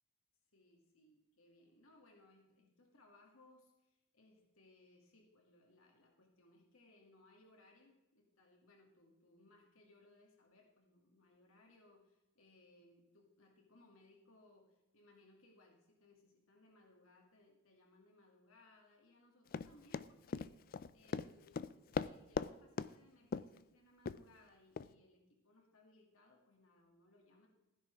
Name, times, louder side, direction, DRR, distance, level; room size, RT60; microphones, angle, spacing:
voice 1, 0.5-27.5, left 2 dB, 80° left, 1 dB, 2.3 m, -67 dB
Run, 19.5-22.5 22.8-22.9 23.3-23.6 24.1-24.2 24.8-24.9, left 5 dB, 45° left, 0.4 m, -39 dB
15.5 x 10.0 x 3.5 m, 0.94 s
head